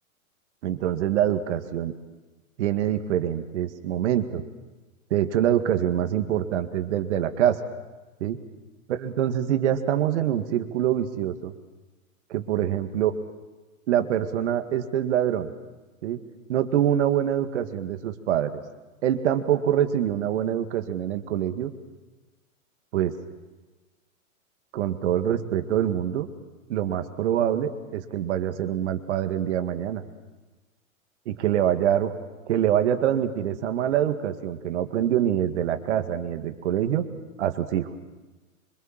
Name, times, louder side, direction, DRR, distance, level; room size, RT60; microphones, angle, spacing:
voice 1, 0.6-1.9 2.6-4.4 5.1-7.6 8.2-8.4 8.9-11.5 12.3-13.1 13.9-15.5 16.0-16.2 16.5-18.6 19.0-21.7 22.9-23.1 24.7-26.3 26.7-30.0 31.3-32.1 32.5-37.1 37.4-37.9, right 10 dB, 55° right, 8 dB, 2.1 m, -25 dB
25.0 x 24.0 x 7.5 m, 1.2 s
hypercardioid pair, 145°, 42 cm